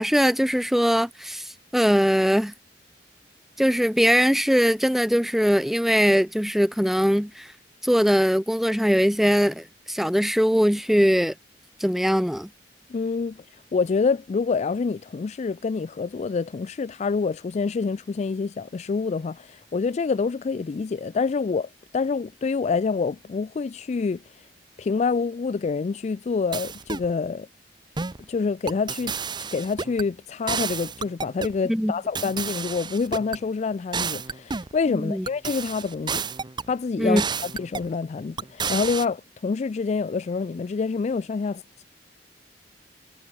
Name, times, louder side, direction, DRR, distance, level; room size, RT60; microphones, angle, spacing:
voice 1, 0.0-1.4 1.7-2.5 3.6-7.5 7.8-11.3 11.8-12.5 31.7-31.9 34.9-35.3 37.0-37.2, equal, ahead, 1.0 m, -21 dB
voice 2, 12.9-13.4 13.7-24.2 24.8-27.5 28.3-29.2 29.5-36.2 36.7-41.8, left 4 dB, 40° left, 0.3 m, -27 dB
sound 1, 26.5-27.1 28.0-28.2 28.7-30.1 30.5-31.6 32.1-33.4 33.9-34.8 35.3-36.7 37.2-37.9 38.4-39.0, right 5 dB, 25° right, 0.7 m, -31 dB
head